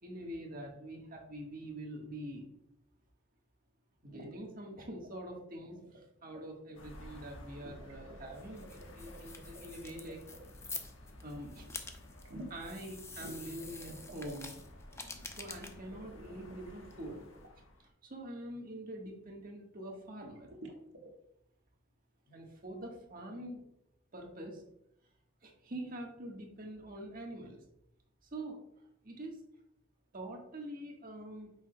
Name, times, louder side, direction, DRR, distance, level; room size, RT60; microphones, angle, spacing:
voice 1, 0.0-2.5 4.0-10.2 10.6-10.8 11.2-11.7 12.5-14.5 15.3-17.2 17.8-20.5 22.3-23.6 24.1-24.6 25.4-27.6 28.3-28.6 29.0-29.4 30.1-31.5, right 1 dB, 50° right, 1 dB, 1.4 m, -45 dB
sound 1, 4.1-4.4 4.9-5.3 5.6-6.0 6.3-6.4 7.6-10.5 12.2-12.8 13.2-14.5 15.9-17.5 20.2-21.1, right 1 dB, 85° right, 1.4 m, -50 dB
sound 2, 6.7-17.9, left 1 dB, 85° left, 1.1 m, -53 dB
sound 3, 8.3-17.5, left 3 dB, 15° left, 0.6 m, -49 dB
8.7 x 6.2 x 2.2 m, 0.77 s
head